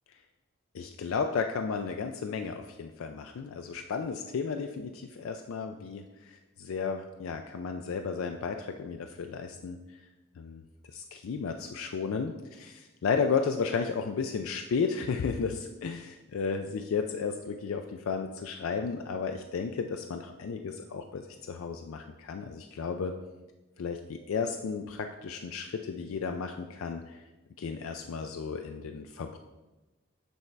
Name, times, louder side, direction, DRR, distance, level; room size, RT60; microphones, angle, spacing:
voice 1, 0.7-10.0 10.4-10.6 10.9-23.1 23.8-27.2 27.6-29.4, left 5 dB, 80° left, 6 dB, 0.4 m, -33 dB
8.0 x 3.2 x 4.5 m, 1.1 s
head